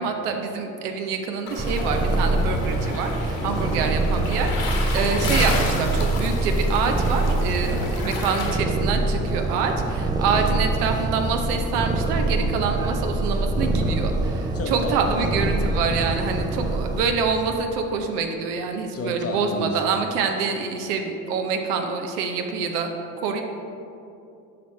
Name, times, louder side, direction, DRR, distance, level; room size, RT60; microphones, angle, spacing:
voice 1, 0.0-22.9 23.2-23.4, right 5 dB, 85° right, 4 dB, 0.8 m, -26 dB
sound 1, 1.5-8.6, left 3 dB, 50° left, 1.5 m, -32 dB
Purr, 1.6-17.0, right 2 dB, 10° right, 0.4 m, -24 dB
voice 2, 3.4-3.8 7.7-8.0 10.3-10.6 14.5-15.3 15.9-16.2 18.9-19.9, left 3 dB, 30° left, 4 dB, 0.9 m, -33 dB
7.9 x 5.5 x 3.2 m, 2.8 s
hypercardioid pair, 70°, 45 cm